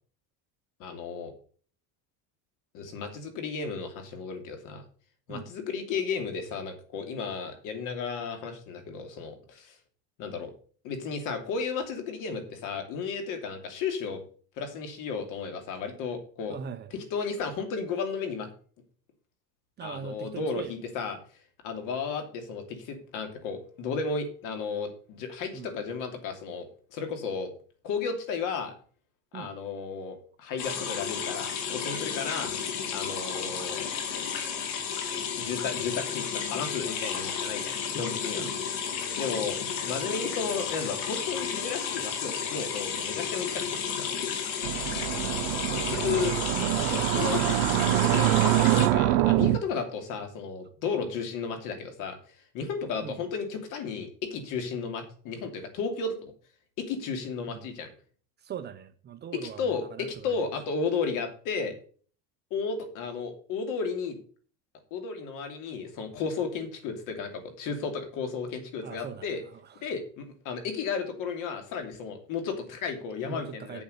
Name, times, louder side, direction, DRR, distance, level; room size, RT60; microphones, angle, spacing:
voice 1, 0.8-1.3 2.7-4.8 5.3-9.8 10.2-10.5 10.8-14.2 14.6-16.6 16.9-18.5 19.8-21.2 21.6-27.5 27.8-28.7 29.3-32.5 32.9-33.9 35.4-38.4 39.1-39.6 39.8-44.1 45.8-46.3 46.8-47.6 48.0-48.4 48.7-52.2 52.5-56.3 56.8-57.9 59.4-61.8 62.5-64.2 64.9-69.4 69.8-73.8, left 5 dB, 60° left, 2.8 m, -33 dB
voice 2, 16.5-16.9 19.8-20.8 25.5-25.7 29.3-29.5 38.4-38.5 46.1-46.5 53.0-53.2 57.5-57.7 58.4-60.4 68.8-69.8 73.2-73.8, right 8 dB, 30° right, 0.7 m, -41 dB
sound 1, 30.6-48.9, left 7 dB, 80° left, 2.5 m, -32 dB
sound 2, 44.6-49.6, right 16 dB, 85° right, 0.8 m, -24 dB
8.1 x 7.3 x 6.5 m
cardioid pair, 160°, 36 cm